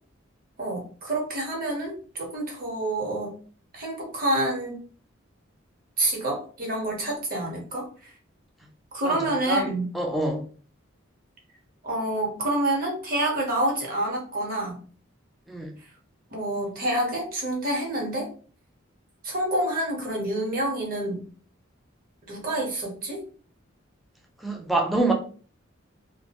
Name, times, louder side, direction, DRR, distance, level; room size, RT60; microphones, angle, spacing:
voice 1, 0.6-3.3 3.7-4.8 6.0-8.1 8.9-9.9 11.8-14.8 16.3-18.3 19.2-21.2 22.3-23.2, right 1 dB, 45° right, 0.9 m, -28 dB
voice 2, 9.9-10.4 15.5-15.7 24.4-25.1, right 2 dB, ahead, 0.3 m, -25 dB
2.3 x 2.1 x 2.8 m
head